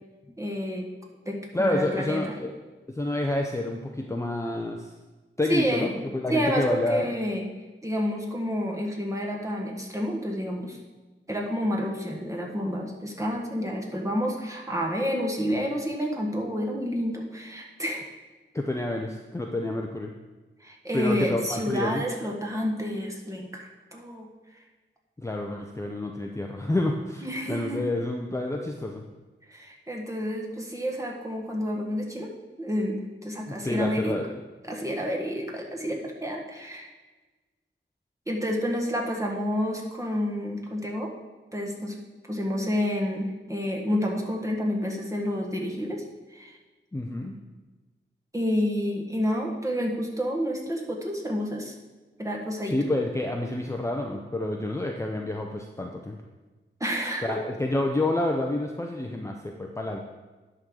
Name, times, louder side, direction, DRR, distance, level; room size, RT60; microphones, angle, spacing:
voice 1, 0.4-0.9 1.2-2.3 5.5-5.9 6.3-7.4 7.8-10.8 11.3-18.1 20.6-24.3 27.2-28.0 29.5-32.3 32.6-34.2 34.7-36.9 38.3-41.1 41.5-41.9 42.3-46.0 46.3-46.6 48.3-51.7 52.2-52.7 56.8-57.4, equal, 15° right, -1 dB, 1.5 m, -29 dB
voice 2, 1.5-2.5 2.9-4.9 5.4-7.1 18.5-20.1 20.9-22.0 25.2-29.0 33.5-34.3 46.9-47.3 52.7-56.2 57.2-60.0, left 1 dB, 15° left, 1 dB, 0.6 m, -29 dB
10.5 x 3.8 x 6.3 m, 1.2 s
wide cardioid pair, 100°, 21 cm